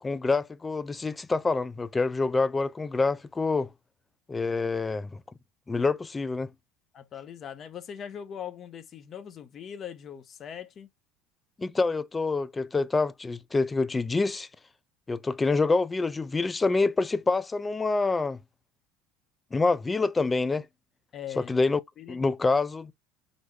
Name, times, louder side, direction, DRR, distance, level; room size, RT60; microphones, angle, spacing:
voice 1, 0.0-3.7 4.3-5.2 5.7-6.5 11.6-14.5 15.1-18.4 19.5-20.7 21.4-21.8 22.1-22.9, left 3 dB, 15° left, 0.4 m, -26 dB
voice 2, 6.9-10.9 21.1-21.5 22.0-22.2, left 9 dB, 35° left, 0.7 m, -41 dB
4.0 x 3.4 x 3.3 m
supercardioid pair, 130°, 0 cm